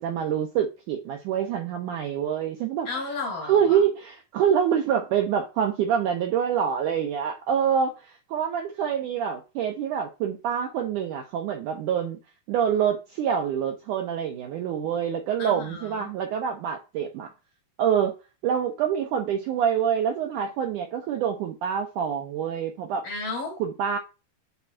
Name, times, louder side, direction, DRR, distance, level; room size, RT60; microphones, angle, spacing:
voice 1, 0.0-2.9 3.5-12.2 12.5-17.3 17.8-18.1 18.4-23.1 23.6-24.0, right 8 dB, 80° right, 1.9 m, -26 dB
voice 2, 2.9-3.8 15.4-16.1 23.0-23.6, left 3 dB, 65° left, 4.3 m, -33 dB
9.6 x 4.5 x 2.4 m
omnidirectional pair, 4.6 m